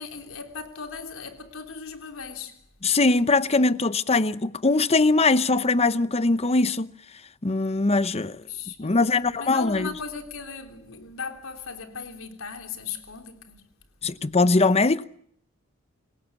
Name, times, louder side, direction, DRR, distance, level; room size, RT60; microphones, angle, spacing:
voice 1, 0.0-2.6 8.1-9.0 9.3-13.6, left 5 dB, 90° left, 3.5 m, -37 dB
voice 2, 2.8-6.9 7.4-8.4 8.8-9.9 14.0-15.1, left 3 dB, 30° left, 0.8 m, -21 dB
27.5 x 17.0 x 7.2 m
head